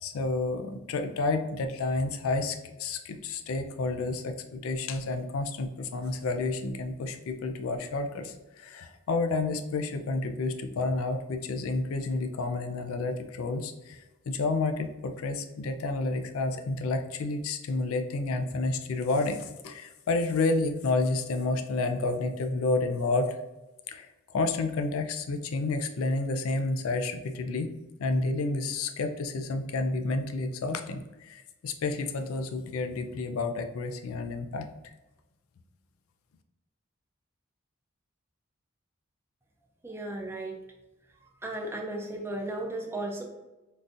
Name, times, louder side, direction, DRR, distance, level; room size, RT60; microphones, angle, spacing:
voice 1, 0.0-23.4 23.9-27.7 28.0-34.9, left 3 dB, 85° left, 6 dB, 0.4 m, -30 dB
voice 2, 39.8-40.6 41.2-43.2, right 1 dB, 10° right, 1 dB, 0.4 m, -35 dB
3.7 x 2.6 x 2.4 m, 1.0 s
head